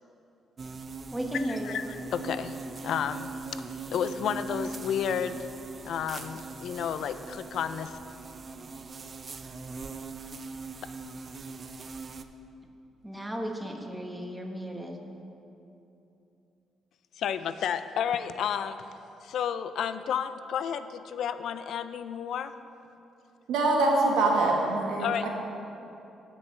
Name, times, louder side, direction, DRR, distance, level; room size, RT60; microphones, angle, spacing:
sound 1, 0.6-12.2, right 3 dB, 40° right, 0.5 m, -40 dB
voice 1, 1.1-1.8 13.0-15.0, equal, 10° right, 1 dB, 1.2 m, -34 dB
voice 2, 2.1-2.6 2.8-3.3 3.9-5.5 5.8-8.0 17.2-18.8 19.2-22.5 25.0-25.3, left 8 dB, 70° left, 11 dB, 0.3 m, -31 dB
voice 3, 23.5-25.3, right 2 dB, 85° right, 0 dB, 1.3 m, -24 dB
16.0 x 6.1 x 3.2 m, 2.8 s
cardioid pair, 90°, 0 cm